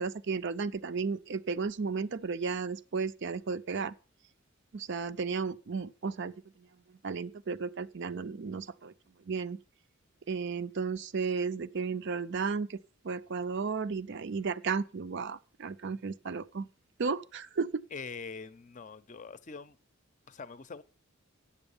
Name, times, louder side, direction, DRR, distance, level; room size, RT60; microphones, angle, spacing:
voice 1, 0.0-3.9 4.7-6.7 7.0-8.9 9.3-9.6 10.3-12.8 13.0-16.7 17.0-17.7, right 5 dB, 60° right, 0.5 m, -34 dB
voice 2, 17.9-19.8 20.3-20.8, left 5 dB, 35° left, 0.6 m, -43 dB
8.7 x 7.1 x 7.0 m
head